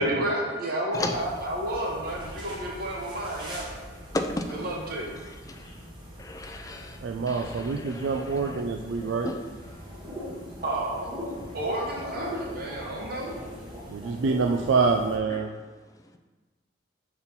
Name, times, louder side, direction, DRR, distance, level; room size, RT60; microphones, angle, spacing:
voice 1, 0.0-3.7 4.5-5.1 10.6-13.4, right 1 dB, 50° right, -2 dB, 1.2 m, -31 dB
sound 1, 0.9-15.2, equal, 25° right, 0.9 m, -41 dB
voice 2, 4.1-4.8 5.5-5.7 6.2-7.0 7.3-8.6 9.0-9.3, left 2 dB, 20° left, 4 dB, 0.4 m, -34 dB
voice 3, 7.0-9.3 13.9-15.5, right 4 dB, 80° right, 3 dB, 0.4 m, -26 dB
4.3 x 4.3 x 5.3 m, 1.3 s
head